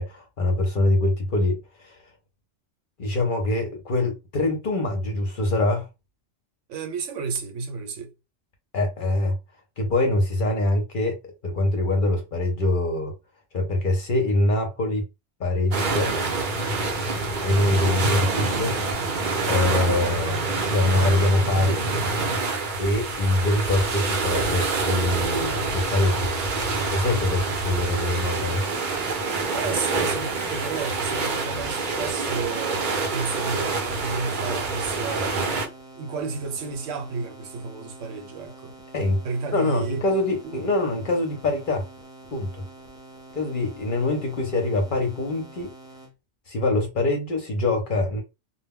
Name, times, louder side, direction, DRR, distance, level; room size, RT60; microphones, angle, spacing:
voice 1, 0.0-2.0 3.0-5.9 8.7-9.3 9.8-13.1 13.5-15.0 15.4-16.1 17.4-18.8 19.5-21.8 22.8-26.3 26.7-28.6 38.9-39.2 39.5-41.8 42.3-42.5 43.3-45.7 46.5-48.2, left 2 dB, 50° left, 0.7 m, -24 dB
voice 2, 6.7-8.1 29.5-35.7 36.0-38.7 39.2-40.0 40.4-40.6, right 4 dB, 75° right, 1.0 m, -32 dB
sound 1, 15.7-35.7, right 3 dB, 50° right, 0.7 m, -26 dB
sound 2, 27.0-46.1, right 2 dB, 5° right, 0.4 m, -46 dB
2.2 x 2.1 x 3.5 m
omnidirectional pair, 1.3 m